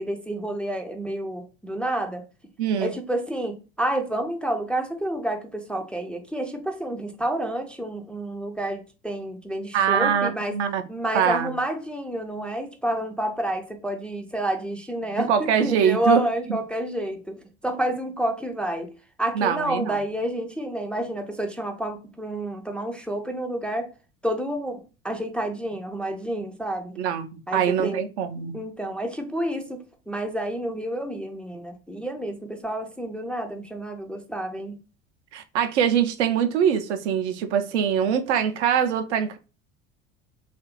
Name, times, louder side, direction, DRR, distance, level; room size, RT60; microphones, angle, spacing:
voice 1, 0.0-2.2 2.8-10.6 10.9-18.9 19.2-23.9 24.2-26.9 27.5-28.0 28.4-34.8, right 1 dB, 5° left, 0.3 m, -29 dB
voice 2, 2.6-2.9 9.7-10.8 11.1-11.5 15.3-16.6 19.3-19.9 27.0-28.6 35.3-39.4, right 8 dB, 75° right, 0.5 m, -23 dB
2.9 x 2.4 x 3.0 m
hypercardioid pair, 70°, 35 cm